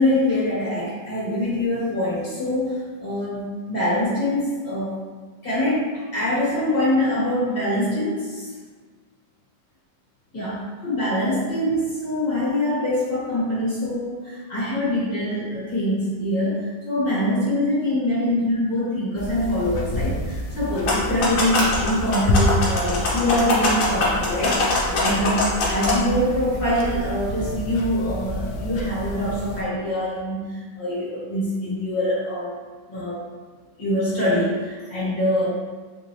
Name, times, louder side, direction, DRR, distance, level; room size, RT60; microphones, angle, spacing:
voice 1, 0.0-5.0 5.4-8.5 10.3-32.5 32.9-33.2 33.8-35.5, left 1 dB, 30° left, -9 dB, 1.4 m, -24 dB
sound 1, 19.2-29.6, equal, 85° left, 0.7 m, -29 dB
sound 2, 20.7-25.9, left 3 dB, 55° left, 1.0 m, -23 dB
3.8 x 2.5 x 3.1 m, 1.5 s
omnidirectional pair, 2.0 m